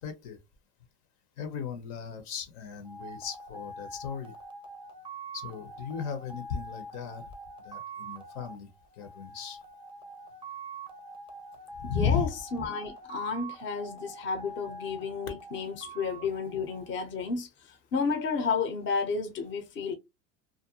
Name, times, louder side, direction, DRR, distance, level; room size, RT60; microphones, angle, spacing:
voice 1, 0.0-0.4 1.4-4.3 5.3-7.3 7.6-8.7 9.0-9.6 11.8-12.3, left 7 dB, 65° left, 1.0 m, -35 dB
sound 1, 2.8-17.3, right 2 dB, 15° right, 0.5 m, -45 dB
voice 2, 11.8-19.9, left 5 dB, 30° left, 0.8 m, -32 dB
2.5 x 2.2 x 2.8 m
supercardioid pair, 115°, 37 cm